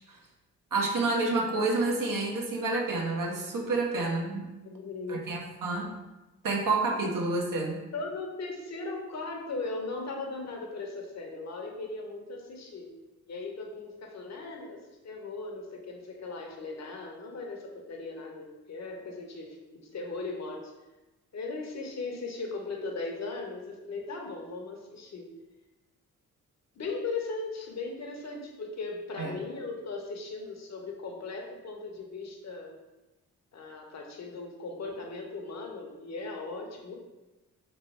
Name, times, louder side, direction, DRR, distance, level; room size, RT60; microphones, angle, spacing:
voice 1, 0.7-4.5 5.1-5.9 6.4-7.8 29.2-29.4, right 3 dB, 60° right, -1 dB, 0.9 m, -29 dB
voice 2, 4.6-5.2 7.9-12.9 13.3-20.7 21.3-25.3 26.8-32.8 33.5-36.9, left 3 dB, 45° left, 1 dB, 0.8 m, -38 dB
3.1 x 2.2 x 4.2 m, 1.1 s
supercardioid pair, 50°, 37 cm